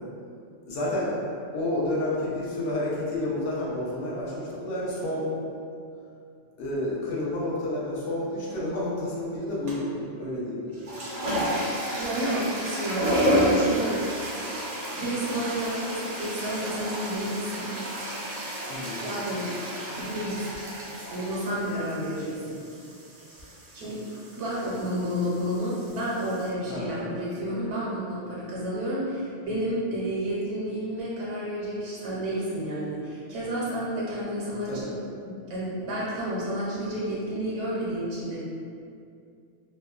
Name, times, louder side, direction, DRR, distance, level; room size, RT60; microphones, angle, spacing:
voice 1, 0.7-1.2 1.5-5.3 6.6-10.6 18.7-19.0 26.7-27.1 34.7-34.9, left 1 dB, 80° left, -7 dB, 0.9 m, -30 dB
sound 1, 9.7-10.0 10.7-26.5, equal, 55° right, 0.4 m, -31 dB
voice 2, 11.9-14.0 14.9-17.7 19.0-19.5 20.0-20.6 21.1-22.6 23.7-24.0 24.4-34.9 35.2-38.4, equal, 85° right, -7 dB, 0.9 m, -30 dB
2.7 x 2.1 x 2.3 m, 2.4 s
omnidirectional pair, 1.2 m